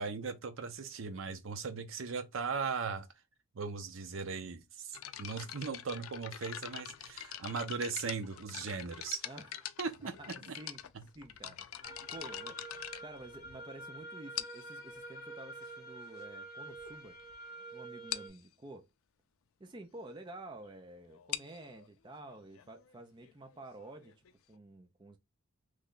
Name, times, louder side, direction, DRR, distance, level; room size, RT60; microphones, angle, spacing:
voice 1, 0.0-3.1 3.5-9.3 9.8-10.5, right 5 dB, 65° right, 0.6 m, -38 dB
sound 1, 4.9-13.8 14.4-14.8 15.6-15.7 16.3-16.4 16.7-16.9 17.2-17.3 17.6-17.7 18.1-18.4 21.1-24.6, left 11 dB, 75° left, 0.4 m, -44 dB
voice 2, 9.2-9.6 10.2-17.2 17.7-18.9 19.6-25.2, right 2 dB, 20° right, 0.4 m, -50 dB
sound 2, 11.8-18.3, right 2 dB, 45° left, 1.1 m, -48 dB
3.2 x 2.2 x 3.8 m
head